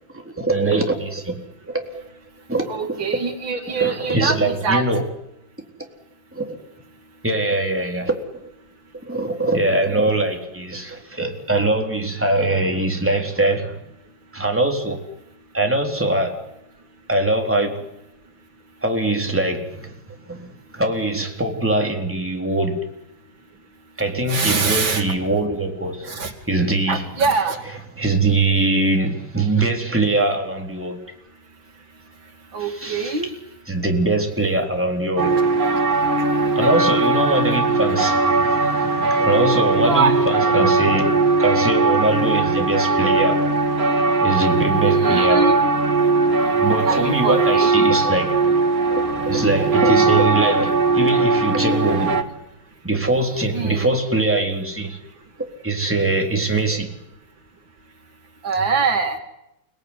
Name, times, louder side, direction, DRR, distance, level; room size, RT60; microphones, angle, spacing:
voice 1, 0.2-1.4 1.7-1.8 2.5-2.7 3.0-3.1 3.7-5.1 6.3-6.6 7.2-8.5 9.0-13.8 14.3-15.0 15.5-16.4 17.1-17.9 18.8-19.9 20.3-22.8 24.0-26.2 26.5-27.0 28.0-31.0 32.6-33.3 33.7-35.4 36.6-43.4 44.2-45.5 46.6-48.3 48.9-52.2 52.8-55.0 55.6-56.9, right 2 dB, 5° right, 3.9 m, -22 dB
voice 2, 2.7-4.8 24.3-25.0 26.1-26.3 26.9-27.6 32.5-33.3 39.8-40.2 44.9-45.6 46.8-47.7 53.5-53.9 58.4-59.2, right 4 dB, 70° right, 3.2 m, -23 dB
sound 1, 35.2-52.2, right 3 dB, 45° right, 2.6 m, -19 dB
29.5 x 19.5 x 9.9 m
omnidirectional pair, 2.2 m